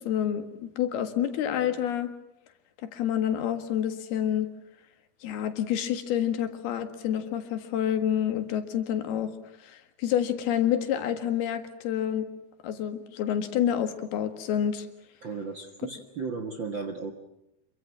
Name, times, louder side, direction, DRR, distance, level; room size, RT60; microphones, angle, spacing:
voice 1, 0.0-2.1 2.8-4.5 5.2-9.3 9.6-12.3 12.6-14.9, left 10 dB, 80° left, 8 dB, 3.7 m, -28 dB
voice 2, 15.2-17.1, right 4 dB, 50° right, 5 dB, 1.5 m, -35 dB
27.0 x 23.5 x 7.5 m, 0.84 s
omnidirectional pair, 4.4 m